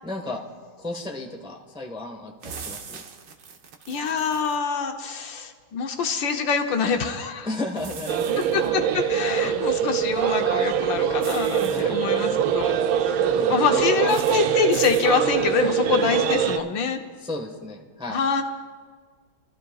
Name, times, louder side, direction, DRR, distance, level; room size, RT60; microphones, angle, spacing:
voice 1, 0.0-0.4 0.8-3.0 7.4-8.8 9.4-9.9 11.7-12.0 13.2-14.2 17.2-18.2, left 2 dB, 5° right, 0 dB, 0.9 m, -34 dB
sound 1, 2.4-4.6 7.8-8.7 11.2-11.8 14.1-14.4 14.7-15.1, right 6 dB, 65° right, 1.5 m, -40 dB
voice 2, 3.9-7.5 8.5-12.7 13.0-13.2 13.5-17.0 18.1-18.4, left 6 dB, 70° left, 5 dB, 1.5 m, -25 dB
sound 2, 8.1-16.6, right 8 dB, 85° right, 1.4 m, -23 dB
26.5 x 13.5 x 2.3 m, 1.5 s
omnidirectional pair, 2.2 m